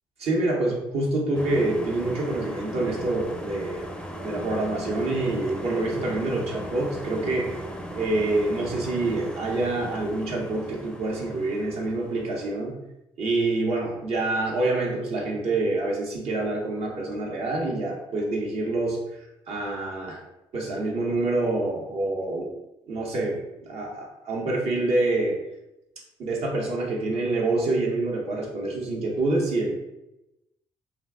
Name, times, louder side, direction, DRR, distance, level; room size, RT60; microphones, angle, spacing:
voice 1, 0.2-3.8 4.2-7.6 7.9-12.8 13.2-19.0 19.5-20.2 20.5-22.5 22.9-25.4 26.2-29.7, right 2 dB, 70° right, -2 dB, 0.8 m, -26 dB
sound 1, 1.3-12.6, equal, 10° left, 0.4 m, -38 dB
2.4 x 2.1 x 3.5 m, 0.91 s
supercardioid pair, 60°, 11 cm